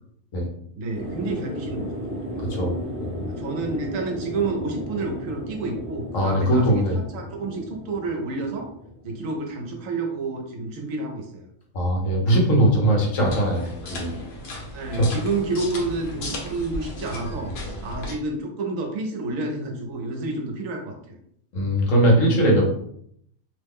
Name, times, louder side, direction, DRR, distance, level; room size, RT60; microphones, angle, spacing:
voice 1, 0.8-2.4 3.3-6.8 7.1-8.7 9.0-11.5 14.7-21.2, right 3 dB, 75° right, 3 dB, 1.1 m, -30 dB
sound 1, 0.9-10.6, left 1 dB, 10° right, 0.7 m, -35 dB
voice 2, 2.4-3.3 6.1-7.0 11.7-14.2 14.9-15.1 21.5-22.6, right 1 dB, 70° left, -1 dB, 1.3 m, -21 dB
sound 2, 13.1-18.1, left 1 dB, 85° left, 1.3 m, -35 dB
3.0 x 2.1 x 3.5 m, 0.68 s
omnidirectional pair, 1.4 m